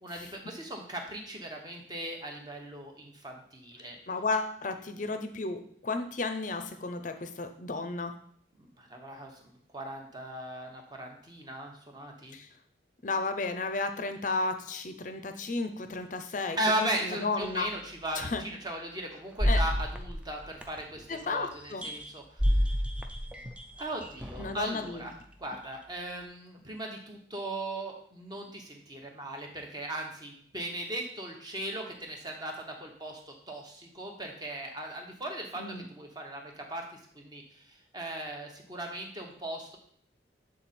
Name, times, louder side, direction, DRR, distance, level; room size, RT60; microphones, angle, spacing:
voice 1, 0.0-4.0 8.6-12.4 16.6-22.8 23.8-25.1 25.4-35.6 35.9-39.8, right 1 dB, 20° right, 2 dB, 1.0 m, -38 dB
voice 2, 4.1-8.1 12.3-12.5 13.0-17.7 18.2-18.4 19.5-19.6 21.1-21.9 24.4-25.1 35.6-35.9, left 3 dB, 40° left, 8 dB, 0.6 m, -33 dB
sound 1, 17.4-17.5 18.2-18.4 19.4-21.1 21.5-24.7 25.4-25.6, equal, 5° right, 0.4 m, -30 dB
7.8 x 3.8 x 4.2 m, 0.63 s
head